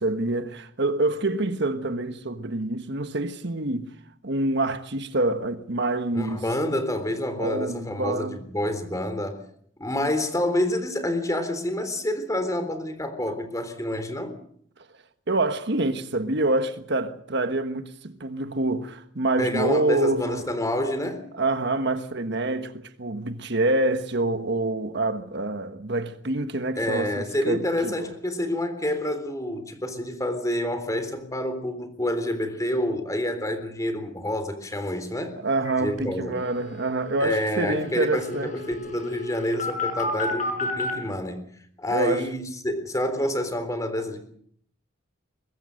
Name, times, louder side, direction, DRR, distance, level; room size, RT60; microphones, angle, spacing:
voice 1, 0.0-3.9 4.2-6.4 7.4-8.4 15.3-20.5 21.3-28.1 35.4-38.5 41.9-42.3, right 2 dB, 60° right, 1.4 m, -26 dB
voice 2, 6.1-9.4 9.8-14.4 19.4-21.3 26.8-35.4 35.8-36.4 37.2-41.5 41.8-44.2, left 1 dB, 15° left, 3.6 m, -28 dB
sound 1, 35.6-35.7 36.0-36.1 36.3-40.9, left 2 dB, 40° left, 7.1 m, -33 dB
23.5 x 21.0 x 6.5 m
head